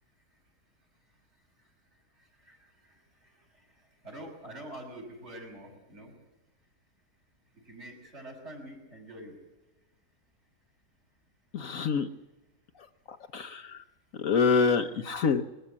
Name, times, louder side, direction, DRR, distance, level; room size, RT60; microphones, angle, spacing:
voice 1, 4.0-6.1 7.7-9.3, right 1 dB, 45° right, 0 dB, 6.4 m, -45 dB
voice 2, 11.5-12.1 13.1-13.8 14.2-15.4, left 5 dB, 60° left, 7 dB, 1.2 m, -26 dB
22.5 x 15.0 x 8.5 m, 1.1 s
omnidirectional pair, 1.7 m